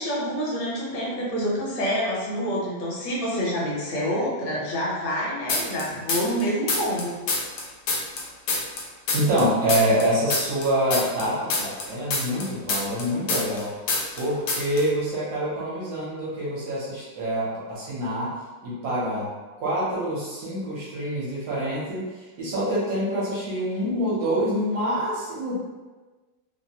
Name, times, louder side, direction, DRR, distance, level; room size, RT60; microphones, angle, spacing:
voice 1, 0.0-7.1, equal, 70° left, -5 dB, 1.3 m, -27 dB
sound 1, 5.5-6.4 6.7-9.4 9.7-13.6 13.9-14.2 14.5-14.8, left 3 dB, 85° left, 1.4 m, -26 dB
voice 2, 9.1-13.7 14.2-18.3 18.6-19.3 19.6-22.1 22.4-25.7, right 1 dB, 60° right, -8 dB, 1.2 m, -26 dB
3.3 x 2.1 x 2.7 m, 1.3 s
omnidirectional pair, 2.0 m